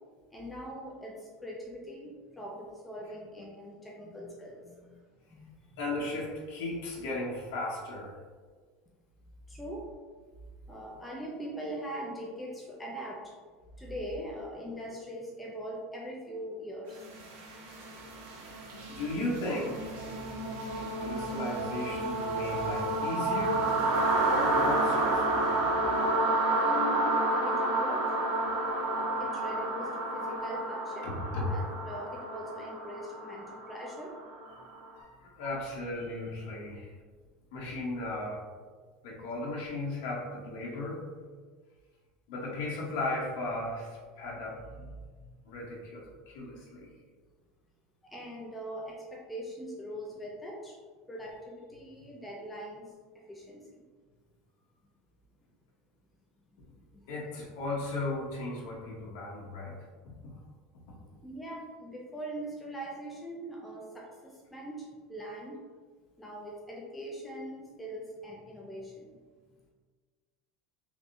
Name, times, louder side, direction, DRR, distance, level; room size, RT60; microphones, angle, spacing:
voice 1, 0.3-5.8 9.5-10.0 10.7-13.4 13.8-17.1 26.6-28.1 29.0-31.1 31.4-34.2 35.4-35.5 48.0-50.8 51.1-53.7 56.8-57.1 61.2-65.6 66.2-69.2, equal, 10° left, -2 dB, 0.4 m, -42 dB
voice 2, 5.8-8.1 18.9-20.0 21.0-23.7 24.2-25.5 31.0-31.4 34.9-36.9 37.5-38.4 39.0-41.0 42.3-44.9 45.4-46.9 57.1-59.8, left 2 dB, 70° left, -3 dB, 0.8 m, -36 dB
sound 1, 17.0-34.8, right 2 dB, 90° right, 0.9 m, -30 dB
3.4 x 3.2 x 2.6 m, 1.5 s
supercardioid pair, 150°, 0 cm